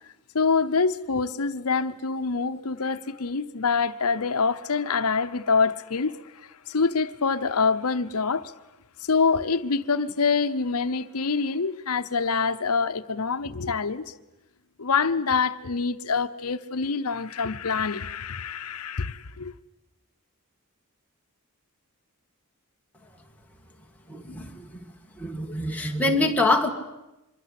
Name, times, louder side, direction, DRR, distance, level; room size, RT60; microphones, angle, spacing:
voice 1, 0.3-8.5 9.0-14.1 14.8-19.5, left 5 dB, 80° left, 0.8 m, -25 dB
voice 2, 24.1-24.8 25.2-26.7, left 2 dB, 5° left, 2.0 m, -25 dB
25.5 x 22.5 x 8.3 m
head